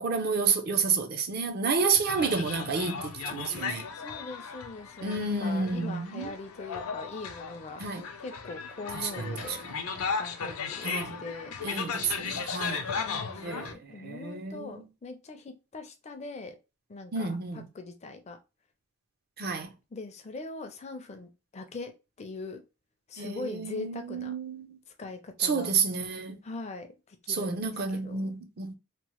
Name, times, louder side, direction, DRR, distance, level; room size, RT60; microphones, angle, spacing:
voice 1, 0.0-3.8 5.0-6.3 7.8-8.0 8.9-9.7 10.8-11.2 11.6-13.0 13.4-14.8 17.1-17.7 19.4-19.7 23.2-24.8 25.4-26.4 27.3-28.7, right 4 dB, 45° right, 0.5 m, -30 dB
sound 1, 1.7-13.7, left 5 dB, 85° left, 0.5 m, -36 dB
voice 2, 3.9-7.8 8.2-9.7 10.0-11.6 12.8-16.6 16.9-18.4 19.9-21.9 22.2-22.6 23.1-24.3 25.0-25.7 26.4-28.3, left 3 dB, 30° left, 0.4 m, -42 dB
2.9 x 2.0 x 2.9 m
head